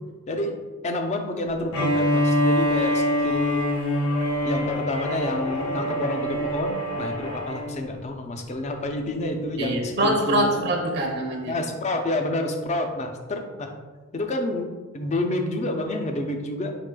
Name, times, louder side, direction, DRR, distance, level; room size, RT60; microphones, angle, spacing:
voice 1, 0.3-3.6 4.4-10.6 11.5-13.7 14.1-16.7, left 1 dB, 30° left, 5 dB, 0.4 m, -29 dB
Bowed string instrument, 1.7-7.8, left 1 dB, 80° left, 0.7 m, -25 dB
voice 2, 9.6-11.6, right 1 dB, 50° right, 0 dB, 0.6 m, -24 dB
4.7 x 4.6 x 2.2 m, 1.3 s
head